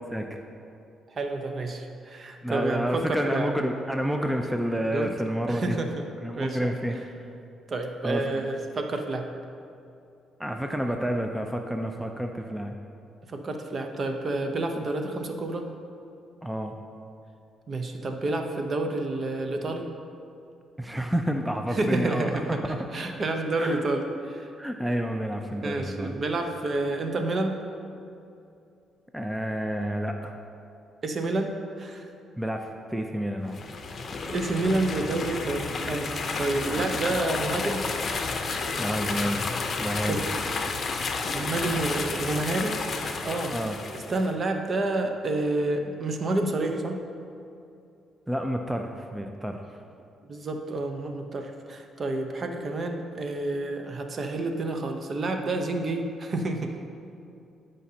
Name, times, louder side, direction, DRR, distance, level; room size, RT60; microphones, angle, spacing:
voice 1, 1.2-3.5 4.9-5.1 5.5-6.0 6.3-6.8 7.7-9.3 13.3-15.7 17.7-19.8 21.7-24.5 25.6-27.6 31.0-32.1 34.3-36.1 36.4-37.8 40.1-40.4 41.3-43.6 43.9-47.0 50.3-56.7, right 2 dB, 45° right, 4 dB, 0.7 m, -29 dB
voice 2, 2.4-5.8 6.2-7.0 8.0-8.4 10.4-12.7 16.4-16.7 20.8-22.9 23.6-23.8 24.6-26.2 29.1-30.4 32.4-33.6 38.8-39.5 39.8-40.2 43.5-43.8 48.3-49.7, equal, 5° right, 4 dB, 0.5 m, -29 dB
sound 1, 33.5-44.3, left 4 dB, 45° left, 0.7 m, -31 dB
12.5 x 5.2 x 2.8 m, 2.6 s
cardioid pair, 90°, 0 cm